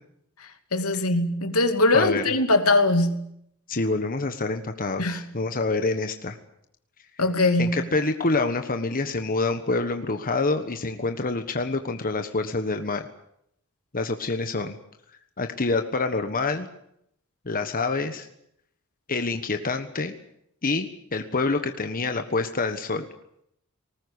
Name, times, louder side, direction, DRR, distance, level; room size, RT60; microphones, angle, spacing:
voice 1, 0.4-3.2 5.0-5.2 7.2-7.9, left 2 dB, 80° left, 2.6 m, -22 dB
voice 2, 1.9-2.2 3.7-6.4 7.6-13.0 13.9-14.8 15.4-16.7 17.4-18.3 19.1-20.1 20.6-23.1, left 3 dB, 40° left, 1.4 m, -27 dB
19.5 x 19.5 x 9.8 m
head